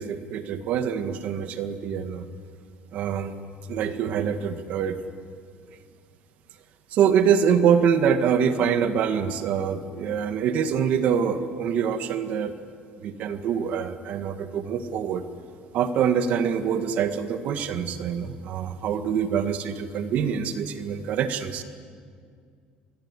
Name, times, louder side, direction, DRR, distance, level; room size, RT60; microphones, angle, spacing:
voice 1, 0.0-2.3 2.9-3.3 3.7-5.0 6.9-12.5 13.0-15.3 15.7-21.6, right 7 dB, 50° right, 9 dB, 1.8 m, -25 dB
27.5 x 20.5 x 9.8 m, 2.2 s
cardioid pair, 170°, 3 cm